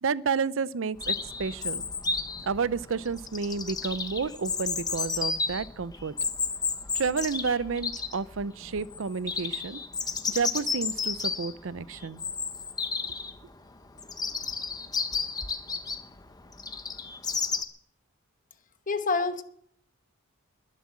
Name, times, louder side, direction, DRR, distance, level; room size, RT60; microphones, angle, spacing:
voice 1, 0.0-1.9 2.4-6.1 6.9-9.8 10.3-12.2, right 5 dB, 65° right, 18 dB, 0.6 m, -30 dB
Chirp tweet, 1.0-17.6, left 5 dB, 20° left, 1.0 m, -32 dB
voice 2, 18.9-19.4, left 4 dB, 40° left, 10 dB, 1.1 m, -27 dB
21.0 x 7.5 x 7.4 m, 0.71 s
head